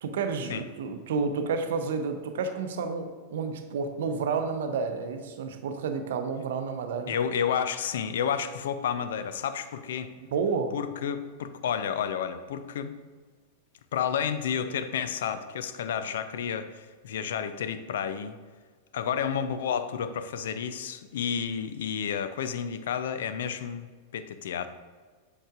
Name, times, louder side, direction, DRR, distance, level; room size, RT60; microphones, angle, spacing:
voice 1, 0.0-7.1 10.3-10.8, right 5 dB, 65° right, 7 dB, 0.6 m, -30 dB
voice 2, 7.1-10.1 10.7-12.9 13.9-18.4 18.9-24.7, left 8 dB, 65° left, 11 dB, 0.4 m, -31 dB
7.7 x 6.3 x 2.4 m, 1.5 s
figure-of-eight pair, 90°, 0 cm